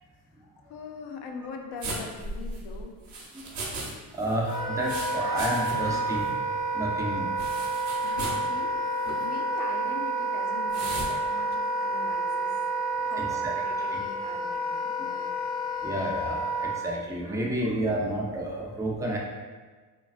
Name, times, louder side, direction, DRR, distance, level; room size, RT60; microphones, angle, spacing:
voice 1, 0.7-2.9 8.0-12.5 13.0-15.4, left 4 dB, 75° left, 3 dB, 0.5 m, -42 dB
sound 1, 1.8-3.9 4.2-6.0 6.3-6.4 7.4-8.5 9.0-9.2 10.7-11.1, right 2 dB, 45° right, 0.7 m, -36 dB
voice 2, 4.1-6.4 6.7-7.3 13.2-13.3 15.0-15.1 15.8-19.2, right 1 dB, 10° right, -2 dB, 0.3 m, -30 dB
Wind instrument woodwind instrument, 4.5-16.8, right 2 dB, 20° left, 0.9 m, -29 dB
3.2 x 2.2 x 2.4 m, 1.4 s
cardioid pair, 115°, 41 cm